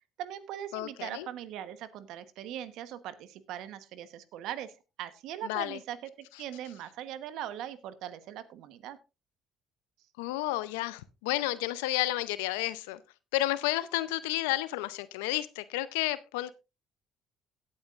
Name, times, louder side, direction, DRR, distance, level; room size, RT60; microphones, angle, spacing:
voice 1, 0.2-4.7 5.0-9.0, right 11 dB, 75° right, 13 dB, 1.1 m, -40 dB
voice 2, 0.7-1.3 5.4-5.8 10.2-13.0 13.3-16.5, left 16 dB, 85° left, 16 dB, 0.6 m, -31 dB
17.5 x 8.7 x 2.5 m, 0.27 s
hypercardioid pair, 60°, 0 cm